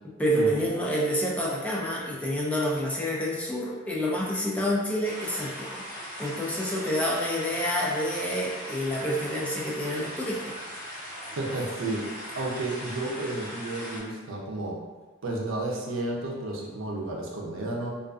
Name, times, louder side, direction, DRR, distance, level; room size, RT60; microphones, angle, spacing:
voice 1, 0.2-5.8 6.2-10.6, equal, 5° left, -4 dB, 0.3 m, -28 dB
sound 1, 5.0-14.0, equal, 25° left, 1.2 m, -39 dB
voice 2, 11.4-14.8 15.2-17.9, right 2 dB, 80° right, -1 dB, 0.5 m, -32 dB
2.4 x 2.3 x 2.3 m, 1.3 s
head